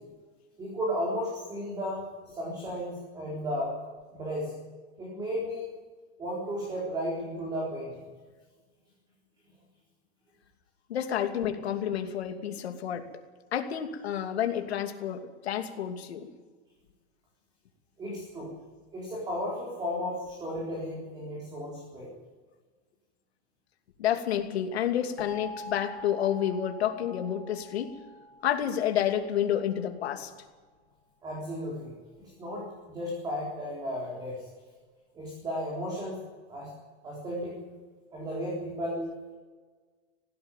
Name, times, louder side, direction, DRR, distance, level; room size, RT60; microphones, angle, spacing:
voice 1, 0.6-3.7 4.1-4.5 5.0-5.6 6.2-8.0 18.0-18.5 18.9-22.1 31.2-31.9 32.4-34.5 35.1-36.2 36.5-36.7 37.0-37.6 38.1-39.1, equal, 10° right, -4 dB, 4.2 m, -34 dB
voice 2, 10.9-13.1 13.5-16.3 24.0-27.9 28.4-30.3, left 10 dB, 65° left, 5 dB, 2.8 m, -29 dB
sound 1, 25.2-29.9, left 2 dB, 50° left, 2.7 m, -45 dB
19.0 x 16.0 x 9.2 m, 1.4 s
supercardioid pair, 175°, 34 cm